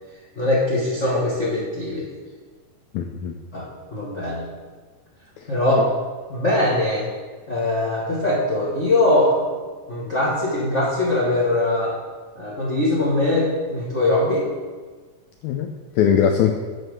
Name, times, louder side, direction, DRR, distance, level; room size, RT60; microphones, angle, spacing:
voice 1, 0.4-2.0 3.5-4.5 5.5-5.9 6.3-7.1 7.5-9.4 9.9-11.9 12.3-14.5, left 1 dB, 50° left, -6 dB, 0.8 m, -21 dB
voice 2, 2.9-3.4 5.4-5.9 15.4-16.5, left 8 dB, 85° left, 5 dB, 1.6 m, -21 dB
8.6 x 4.7 x 6.4 m, 1.4 s
omnidirectional pair, 3.8 m